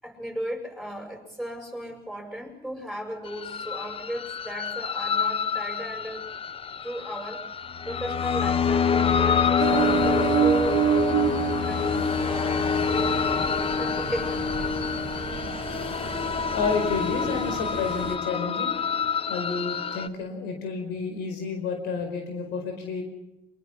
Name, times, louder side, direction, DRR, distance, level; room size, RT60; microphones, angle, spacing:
voice 1, 0.0-6.3 6.8-7.5 7.9-10.8 11.6-13.4 13.7-14.4 15.2-15.3, equal, ahead, 3 dB, 7.9 m, -35 dB
sound 1, 3.3-20.1, left 6 dB, 35° left, 0.9 m, -27 dB
Ocean, 9.6-18.2, right 9 dB, 55° right, 2.3 m, -29 dB
voice 2, 16.5-18.8 19.3-23.0, left 5 dB, 90° left, 5 dB, 4.8 m, -30 dB
24.5 x 23.0 x 5.8 m, 0.88 s
cardioid pair, 110°, 17 cm